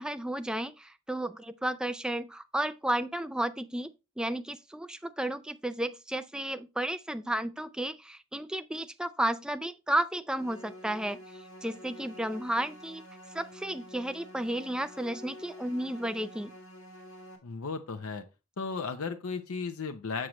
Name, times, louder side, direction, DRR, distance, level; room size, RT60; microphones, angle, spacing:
voice 1, 0.0-3.9 4.2-13.0 13.3-16.5, right 1 dB, 5° right, 0.3 m, -33 dB
sound 1, 10.3-17.4, equal, 65° left, 1.8 m, -49 dB
voice 2, 17.4-18.2 18.6-20.3, left 4 dB, 90° left, 0.7 m, -35 dB
7.5 x 6.3 x 3.0 m
head